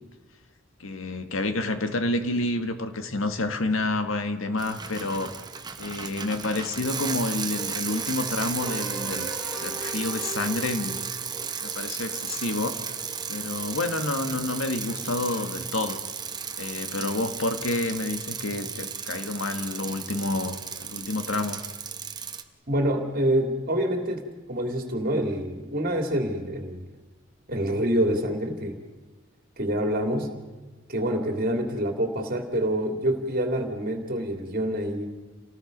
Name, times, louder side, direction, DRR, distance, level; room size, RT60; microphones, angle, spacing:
voice 1, 0.8-5.4 5.8-9.3 9.6-11.0 11.6-12.8 13.3-16.0 16.6-21.6, left 2 dB, 85° left, 8 dB, 1.7 m, -29 dB
Bicycle, 4.6-22.4, right 6 dB, 20° right, 1.1 m, -34 dB
sound 1, 8.6-11.9, right 2 dB, 5° left, 3.1 m, -40 dB
voice 2, 22.7-24.2 24.5-26.8 27.5-28.8 29.6-30.3 30.9-35.1, right 1 dB, 45° right, 4 dB, 2.8 m, -26 dB
29.5 x 19.0 x 5.3 m, 1.3 s
head